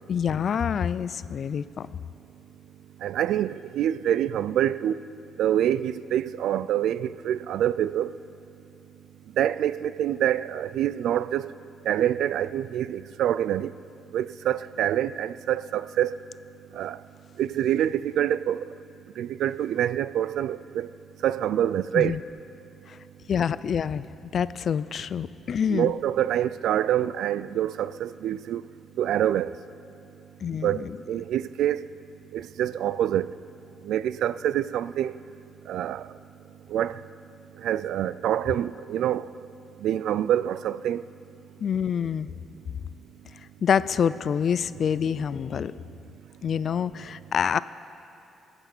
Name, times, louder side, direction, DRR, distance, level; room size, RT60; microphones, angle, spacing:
voice 1, 0.1-1.9 21.9-22.2 22.9-23.0 23.3-24.0 24.3-25.9 30.4-30.9 41.6-42.3 43.6-45.9 46.4-47.6, left 7 dB, 55° left, 0.3 m, -26 dB
voice 2, 3.0-5.0 5.4-8.1 9.4-11.5 11.9-13.7 14.1-16.1 16.7-17.0 17.4-18.7 19.2-20.9 21.2-22.2 25.7-28.6 29.0-29.5 30.6-31.8 32.3-33.3 33.8-35.1 35.7-36.1 36.7-37.0 37.6-39.3 39.8-41.0, right 11 dB, 80° right, 0.3 m, -26 dB
21.5 x 7.9 x 6.1 m
cardioid pair, 90°, 0 cm